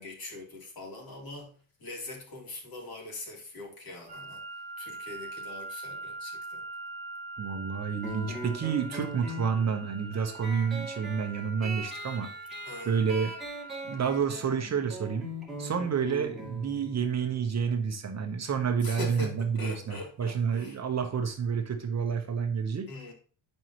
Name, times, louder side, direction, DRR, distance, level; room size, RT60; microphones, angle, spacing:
voice 1, 0.0-1.5 1.8-4.4 4.8-6.6 12.7-13.0 18.8-20.8 22.9-23.1, left 2 dB, 50° left, 3.2 m, -41 dB
sound 1, 4.1-14.2, right 2 dB, 15° right, 2.1 m, -43 dB
voice 2, 7.4-12.3 12.8-13.3 13.8-15.3 15.6-22.9, right 6 dB, 35° right, 1.0 m, -29 dB
sound 2, 8.0-19.1, right 1 dB, ahead, 2.5 m, -42 dB
9.0 x 5.5 x 3.0 m
cardioid pair, 140°, 47 cm